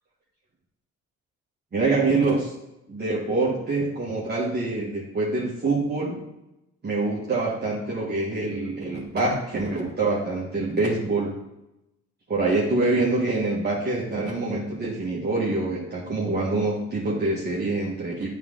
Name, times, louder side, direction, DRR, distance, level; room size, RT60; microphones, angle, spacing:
voice 1, 1.7-2.5 2.9-6.2 6.8-11.4 12.3-18.3, right 3 dB, 35° right, -6 dB, 1.6 m, -25 dB
9.1 x 3.8 x 3.8 m, 0.90 s
cardioid pair, 90°, 30 cm